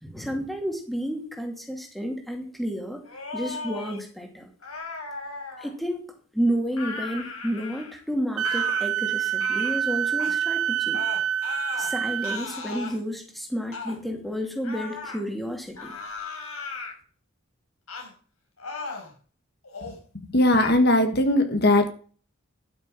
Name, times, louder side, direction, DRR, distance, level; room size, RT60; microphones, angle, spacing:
voice 1, 0.0-3.0 3.3-4.5 5.6-6.1 6.3-11.0 11.8-15.9, equal, ahead, 2 dB, 2.5 m, -31 dB
sound 1, 3.1-4.0 4.6-5.7 6.7-8.0 8.4-8.8 9.4-9.8 10.2-10.4 10.9-11.9 12.2-13.0 13.7-14.0 14.6-15.2 15.8-16.9 17.9-18.1 18.6-19.1 19.6-20.0 20.5-20.7, left 4 dB, 85° left, 4.3 m, -36 dB
Wind instrument woodwind instrument, 8.4-12.4, right 9 dB, 85° right, 0.8 m, -26 dB
voice 2, 20.3-21.9, left 1 dB, 50° left, 7 dB, 1.6 m, -19 dB
12.0 x 6.6 x 7.4 m, 0.42 s
head